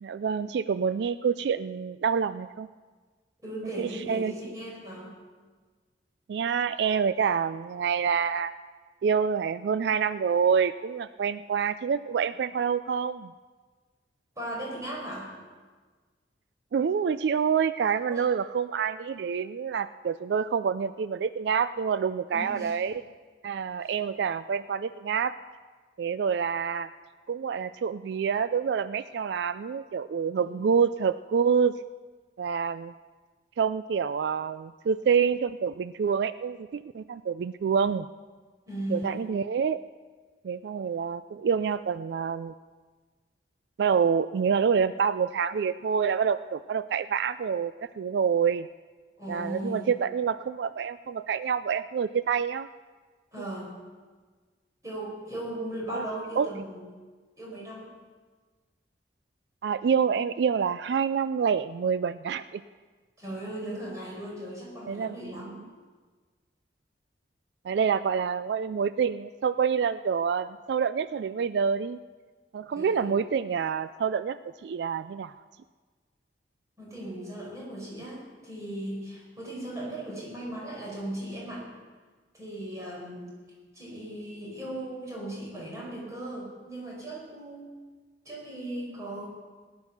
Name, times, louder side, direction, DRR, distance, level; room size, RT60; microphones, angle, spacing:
voice 1, 0.0-2.7 3.8-4.3 6.3-8.5 9.0-13.3 16.7-22.9 23.4-25.3 26.0-26.9 27.3-31.7 32.4-32.9 33.6-38.1 38.9-39.8 40.4-42.5 43.8-48.7 49.3-52.7 55.9-56.0 56.4-56.5 59.6-62.6 64.9-65.6 67.6-72.0 72.5-74.4 74.6-75.4, right 6 dB, 75° right, 14 dB, 0.3 m, -27 dB
voice 2, 3.4-5.1 14.3-15.3 18.1-18.2 22.3-22.7 23.8-24.0 30.4-30.6 38.7-39.2 49.2-49.9 53.3-53.8 54.8-56.9 57.4-57.9 63.2-65.5 72.7-73.1 76.8-81.6 82.3-83.3 83.7-87.7 88.2-89.3, right 1 dB, 20° right, -4 dB, 5.1 m, -37 dB
18.0 x 10.5 x 5.8 m, 1.4 s
head